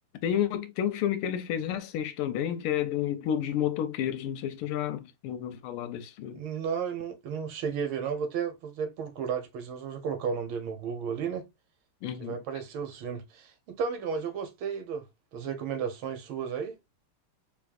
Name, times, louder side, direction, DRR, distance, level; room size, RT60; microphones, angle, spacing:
voice 1, 0.2-6.4 12.0-12.4, left 10 dB, 90° left, 1.5 m, -30 dB
voice 2, 6.3-11.5 12.2-15.1 15.3-16.7, right 6 dB, 70° right, 1.7 m, -33 dB
3.6 x 3.5 x 2.4 m
omnidirectional pair, 2.4 m